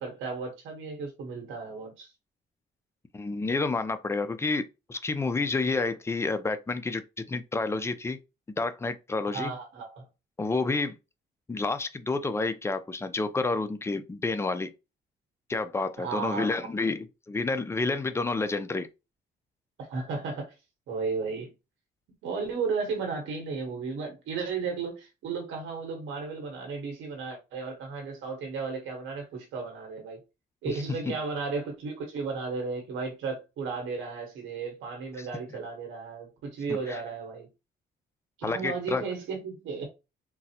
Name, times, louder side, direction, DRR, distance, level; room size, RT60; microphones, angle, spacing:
voice 1, 0.0-2.1 9.2-10.0 16.0-16.7 19.8-20.5 20.9-21.5 22.2-30.2 30.6-37.5 38.4-39.9, right 4 dB, 85° right, 1.1 m, -34 dB
voice 2, 3.1-8.2 8.6-9.5 10.4-11.0 11.5-14.7 15.5-18.9 30.6-30.8 36.7-37.0 38.4-39.0, left 3 dB, 15° left, 0.4 m, -29 dB
3.8 x 2.0 x 2.8 m
cardioid pair, 90°, 20 cm